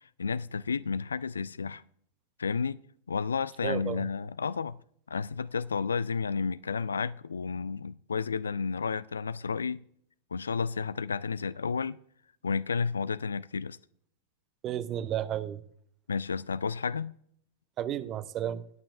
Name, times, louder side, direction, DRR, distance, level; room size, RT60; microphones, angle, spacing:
voice 1, 0.2-1.8 2.4-2.8 3.1-4.8 5.1-9.8 10.3-12.0 12.4-13.8 16.1-17.1, left 5 dB, 70° left, 0.3 m, -31 dB
voice 2, 3.6-4.1 14.6-15.6 17.8-18.6, right 10 dB, 35° right, 0.6 m, -32 dB
20.5 x 8.9 x 2.5 m
figure-of-eight pair, 90°, 0 cm